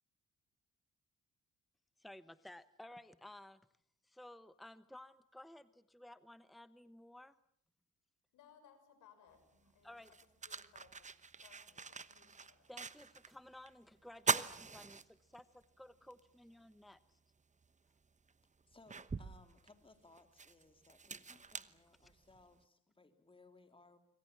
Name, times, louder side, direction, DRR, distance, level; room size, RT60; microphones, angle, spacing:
voice 1, 2.0-3.6 4.0-7.3 9.8-10.1 12.7-17.2, left 1 dB, ahead, 14 dB, 1.0 m, -55 dB
voice 2, 8.3-10.2 10.4-11.1 11.4-12.7, left 8 dB, 90° left, 8 dB, 6.5 m, -65 dB
sound 1, 9.4-9.5 10.0-13.4 13.7-13.8 14.2-15.6 16.1-16.2 17.6-17.7 18.3-22.5, right 4 dB, 25° right, 1.0 m, -42 dB
voice 3, 18.7-24.0, left 3 dB, 15° left, 7 dB, 3.5 m, -64 dB
27.0 x 24.5 x 7.3 m, 0.65 s
cardioid pair, 90°, 30 cm